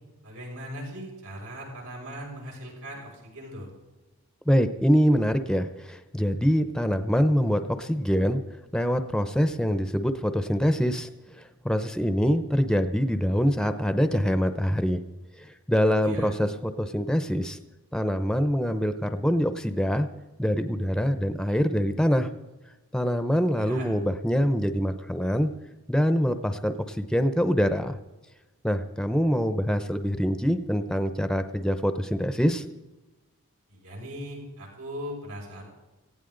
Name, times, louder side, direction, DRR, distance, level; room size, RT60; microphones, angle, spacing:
voice 1, 0.2-3.7 15.8-16.3 23.5-23.9 33.7-35.6, equal, 85° right, -2 dB, 6.7 m, -39 dB
voice 2, 4.5-8.4 8.7-11.1 11.6-15.0 15.7-17.6 17.9-20.1 20.4-22.3 22.9-25.5 25.9-28.0 28.6-32.6, equal, 5° left, 9 dB, 0.6 m, -24 dB
18.5 x 15.5 x 3.9 m, 1.1 s
head